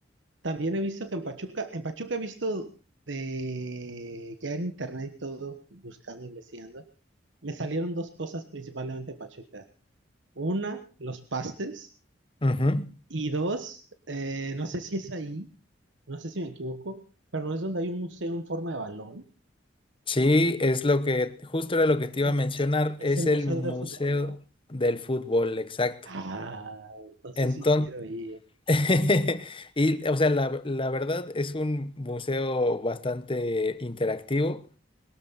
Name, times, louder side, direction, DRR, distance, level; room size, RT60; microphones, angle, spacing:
voice 1, 0.4-2.7 3.1-6.9 7.4-9.7 10.4-11.9 13.1-15.5 16.1-17.0 17.3-19.2 22.2-22.3 23.0-24.3 26.0-28.4, right 2 dB, 70° right, 1.3 m, -34 dB
voice 2, 12.4-12.9 20.1-24.4 24.7-26.0 27.4-27.9 28.7-34.6, left 2 dB, 30° left, 1.0 m, -25 dB
21.5 x 12.5 x 4.1 m
head